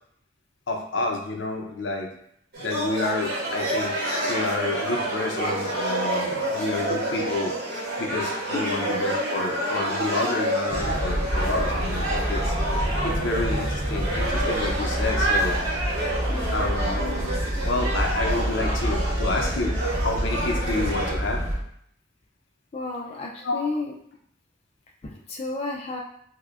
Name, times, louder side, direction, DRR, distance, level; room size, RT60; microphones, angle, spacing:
voice 1, 0.7-2.1 2.6-4.0 4.3-7.5 8.0-12.5 12.8-15.6 16.5-17.3 17.6-19.7 20.0-21.4 23.4-23.7, left 3 dB, 80° left, 2 dB, 0.6 m, -29 dB
sound 1, 2.5-21.1, right 1 dB, 90° right, 1.2 m, -28 dB
sound 2, 10.7-21.6, equal, 20° right, 0.8 m, -28 dB
voice 2, 16.3-16.7 22.7-24.0 25.0-26.0, left 3 dB, 30° left, -1 dB, 0.3 m, -32 dB
4.7 x 2.1 x 2.4 m, 0.69 s
head